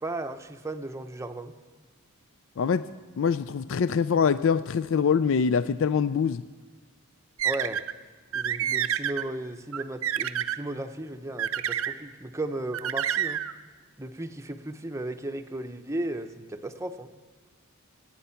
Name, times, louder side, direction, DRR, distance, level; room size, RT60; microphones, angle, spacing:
voice 1, 0.0-1.5 7.4-7.8 8.3-13.4 14.0-17.1, right 1 dB, 15° right, 7 dB, 0.7 m, -35 dB
voice 2, 2.6-2.9 3.2-6.4, left 6 dB, 60° left, 14 dB, 0.4 m, -24 dB
sound 1, 7.4-7.9 8.3-9.2 9.7-10.6 11.4-12.0 12.7-13.5, right 9 dB, 65° right, 0.5 m, -28 dB
26.5 x 9.2 x 5.7 m, 1.3 s
head